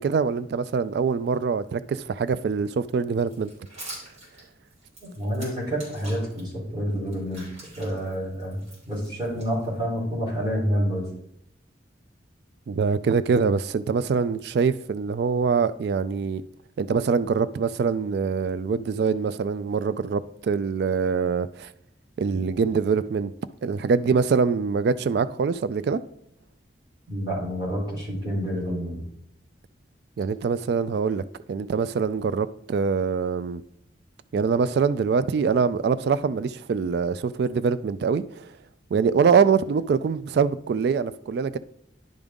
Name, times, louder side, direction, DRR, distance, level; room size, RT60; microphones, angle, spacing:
voice 1, 0.0-3.5 12.7-16.4 16.8-21.7 22.2-23.3 23.6-26.0 30.2-31.2 31.5-33.6 34.3-38.5 38.9-41.6, right 5 dB, 60° right, 0.3 m, -24 dB
sound 1, 3.2-6.4 6.9-10.0, right 1 dB, 40° right, 3.1 m, -45 dB
voice 2, 5.0-7.4 7.8-8.6 8.9-11.0 27.1-29.0, equal, 25° right, 3.5 m, -28 dB
10.5 x 5.2 x 3.6 m
head